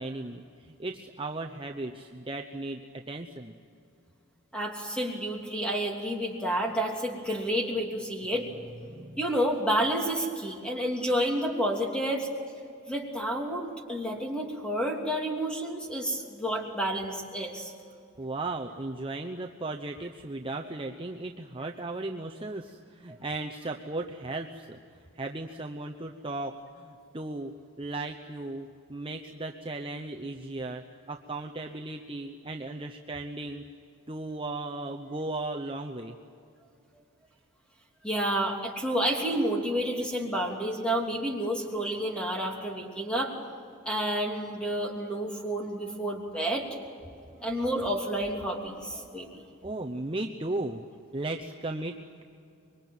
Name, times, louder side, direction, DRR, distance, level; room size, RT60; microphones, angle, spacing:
voice 1, 0.0-3.5 8.9-9.2 18.2-24.8 25.1-27.5 27.8-33.6 34.1-36.2 47.3-47.5 49.6-50.8 51.1-52.0, right 2 dB, 25° right, 3 dB, 0.8 m, -36 dB
voice 2, 4.5-8.5 9.2-12.3 12.9-17.7 38.0-43.3 43.8-46.7 47.4-49.4, right 1 dB, 5° left, 0 dB, 3.1 m, -30 dB
25.5 x 23.0 x 9.3 m, 2.4 s
head